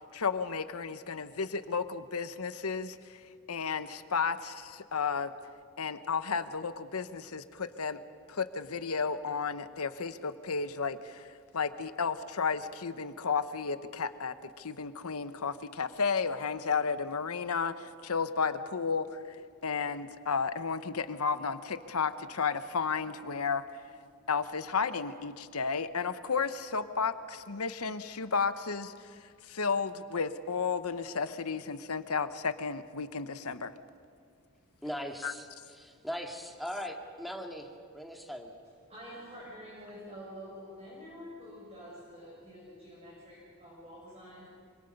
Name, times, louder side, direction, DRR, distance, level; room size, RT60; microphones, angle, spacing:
voice 1, 0.1-3.2 3.5-5.3 5.8-8.0 8.3-11.3 11.5-23.6 24.3-28.9 29.5-33.7 35.2-35.3, left 5 dB, 90° left, 11 dB, 1.0 m, -33 dB
voice 2, 34.8-37.7 37.9-38.5, equal, ahead, 2 dB, 2.0 m, -39 dB
voice 3, 38.9-44.5, equal, 30° right, -5 dB, 6.3 m, -47 dB
26.0 x 25.5 x 5.4 m, 2.1 s
head